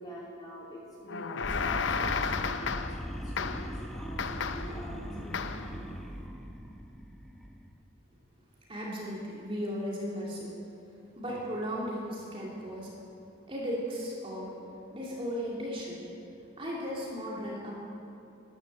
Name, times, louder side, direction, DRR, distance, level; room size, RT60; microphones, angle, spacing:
voice 1, 0.0-6.1, equal, 20° left, -5 dB, 3.0 m, -45 dB
sound 1, 1.1-3.1 3.4-3.8 4.2-4.8 5.3-5.7, left 5 dB, 65° left, 0.6 m, -33 dB
sound 2, 1.4-7.7, equal, ahead, 0.9 m, -40 dB
voice 2, 8.7-10.5 11.2-12.9 13.5-14.6 14.9-16.0 16.6-17.7, equal, 25° right, -4 dB, 2.5 m, -36 dB
12.0 x 11.5 x 7.4 m, 3.0 s
head